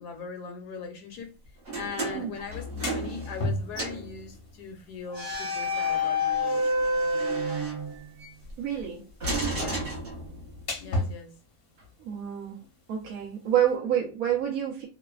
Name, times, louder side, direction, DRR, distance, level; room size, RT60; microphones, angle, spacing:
voice 1, 0.0-1.3 1.8-6.9 9.5-10.0 10.8-11.4, left 5 dB, 80° left, 1.2 m, -40 dB
sound 1, 1.7-3.5 3.7-4.1 5.1-8.3 9.2-10.6, left 1 dB, 45° right, 1.0 m, -29 dB
sound 2, 2.5-13.8, left 1 dB, 50° left, 0.7 m, -39 dB
voice 2, 8.6-9.0 12.0-12.6 12.9-14.9, right 10 dB, 70° right, 1.0 m, -28 dB
3.2 x 2.0 x 2.2 m
omnidirectional pair, 1.7 m